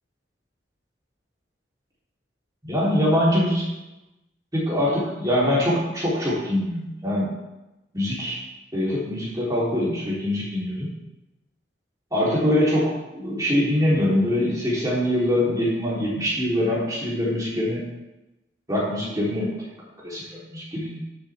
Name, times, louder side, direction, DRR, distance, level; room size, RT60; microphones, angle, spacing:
voice 1, 2.6-3.7 4.5-7.3 7.9-8.4 8.7-10.9 12.1-17.8 18.7-19.5 20.0-21.0, left 1 dB, 20° right, -7 dB, 3.6 m, -23 dB
11.5 x 7.5 x 3.6 m, 0.98 s
head